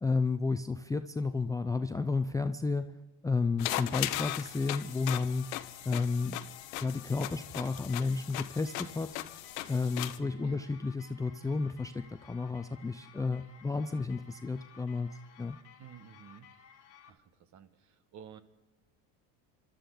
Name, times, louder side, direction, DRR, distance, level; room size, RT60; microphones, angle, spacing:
voice 1, 0.0-2.9 3.2-5.5 5.8-6.4 6.8-9.1 9.7-15.1 15.4-15.6, left 4 dB, 10° left, 9 dB, 0.5 m, -32 dB
sound 1, 3.6-10.2, left 15 dB, 90° left, 0.9 m, -38 dB
sound 2, 4.0-17.1, left 7 dB, 35° left, 1.7 m, -57 dB
voice 2, 15.8-16.5 17.1-18.4, right 9 dB, 45° right, 12 dB, 1.4 m, -52 dB
27.0 x 12.5 x 3.9 m, 1.1 s
supercardioid pair, 110°, 40 cm